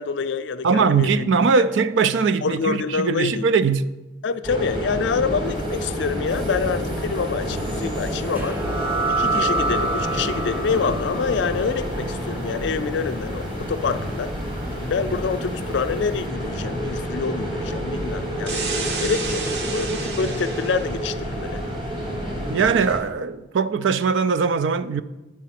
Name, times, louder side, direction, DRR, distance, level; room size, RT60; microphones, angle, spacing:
voice 1, 0.0-1.3 1.6-1.7 2.4-3.5 4.2-8.6 9.2-14.3 14.8-18.6 19.0-21.6, left 5 dB, 70° left, 0.4 m, -26 dB
voice 2, 0.6-3.8 22.5-25.0, right 5 dB, 75° right, 0.4 m, -20 dB
sound 1, 4.4-23.0, equal, 25° right, 1.5 m, -29 dB
sound 2, 8.3-15.6, right 2 dB, 10° right, 0.5 m, -29 dB
sound 3, 18.5-20.9, right 4 dB, 60° right, 0.8 m, -30 dB
7.5 x 4.6 x 5.8 m
head